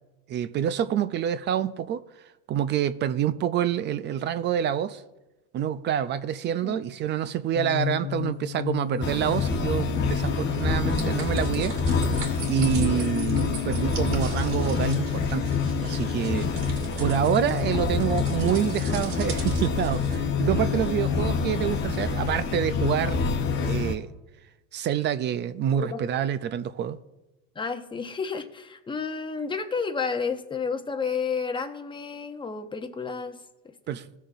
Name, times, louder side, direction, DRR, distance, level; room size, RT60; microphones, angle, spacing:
voice 1, 0.3-2.0 2.5-5.0 5.5-11.8 12.4-16.7 17.0-23.3 23.6-24.1 24.7-27.0 33.9-34.0, right 10 dB, 30° right, 0.4 m, -27 dB
sound 1, 7.5-23.9, left 12 dB, 75° left, 0.8 m, -31 dB
sound 2, 9.0-24.0, left 3 dB, 30° left, 1.0 m, -28 dB
sound 3, 10.9-20.2, right 5 dB, 75° right, 2.5 m, -42 dB
voice 2, 27.6-33.4, left 5 dB, 15° left, 0.7 m, -31 dB
17.5 x 6.4 x 2.7 m
supercardioid pair, 120°, 35 cm